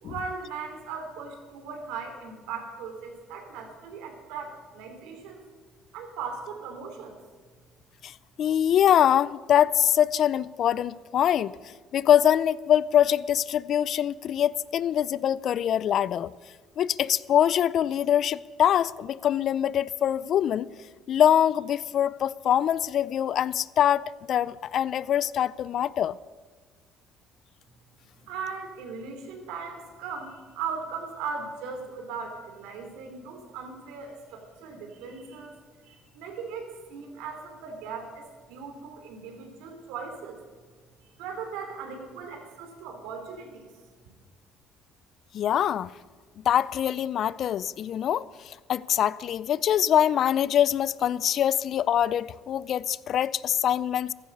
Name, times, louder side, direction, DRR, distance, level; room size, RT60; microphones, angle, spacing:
voice 1, 0.0-5.4 5.9-7.2 28.3-35.5 35.8-40.4 41.2-43.7, right 5 dB, 85° right, 2.9 m, -38 dB
voice 2, 8.0-11.5 11.9-16.3 16.8-20.7 21.1-26.2 45.3-45.9 46.4-54.1, left 10 dB, 60° left, 0.4 m, -24 dB
15.0 x 13.5 x 5.4 m
supercardioid pair, 75°, 0 cm